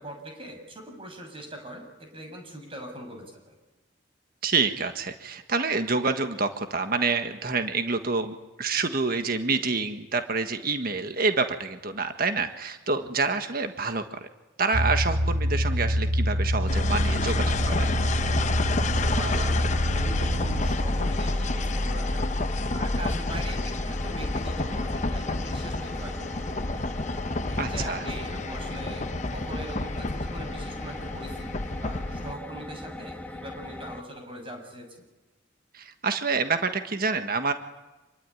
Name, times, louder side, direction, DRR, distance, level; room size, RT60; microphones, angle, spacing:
voice 1, 0.0-3.5 12.9-13.1 18.9-22.3 22.7-26.9 27.5-35.1, right 1 dB, 30° right, 4 dB, 6.9 m, -41 dB
voice 2, 4.4-14.3 14.6-17.9 27.6-28.0 35.7-37.5, right 4 dB, 50° right, 7 dB, 1.6 m, -27 dB
sound 1, 14.7-20.8, equal, 70° right, 1.4 m, -26 dB
sound 2, 16.7-32.3, left 2 dB, 40° left, 0.9 m, -29 dB
sound 3, 17.4-34.0, left 1 dB, 10° left, 1.5 m, -40 dB
27.0 x 22.5 x 9.8 m, 1.1 s
head